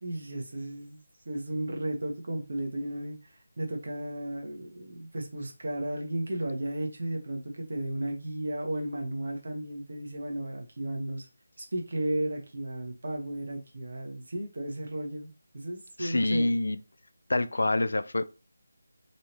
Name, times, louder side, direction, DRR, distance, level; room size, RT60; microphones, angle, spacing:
voice 1, 0.0-1.0 1.2-3.3 3.6-11.3 11.6-15.3 15.5-16.4, right 1 dB, 55° right, 1.1 m, -34 dB
voice 2, 16.0-16.8 17.3-18.2, left 2 dB, 70° left, 0.3 m, -26 dB
3.2 x 2.7 x 2.9 m
figure-of-eight pair, 165°, 0 cm